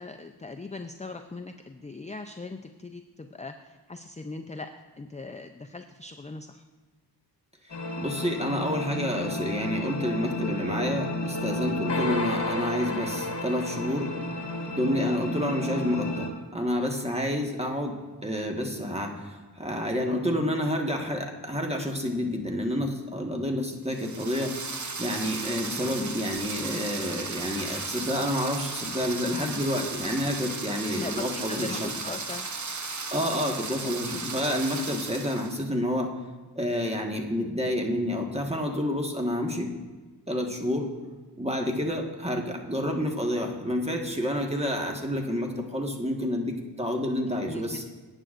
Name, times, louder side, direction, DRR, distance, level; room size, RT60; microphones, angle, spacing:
voice 1, 0.0-6.6 20.2-20.3 30.9-32.5 47.3-47.8, left 3 dB, 15° left, 6 dB, 0.5 m, -40 dB
sound 1, 7.7-16.3, left 1 dB, 70° left, 1.6 m, -32 dB
voice 2, 8.0-14.1 14.7-16.3 16.5-18.0 18.2-24.6 25.0-31.9 33.1-36.1 36.5-39.7 40.3-40.9 41.4-47.8, equal, 15° right, 2 dB, 1.4 m, -29 dB
sound 2, 23.9-35.6, right 4 dB, 40° right, 0.9 m, -35 dB
18.0 x 9.0 x 2.5 m, 1.3 s
wide cardioid pair, 55°, 43 cm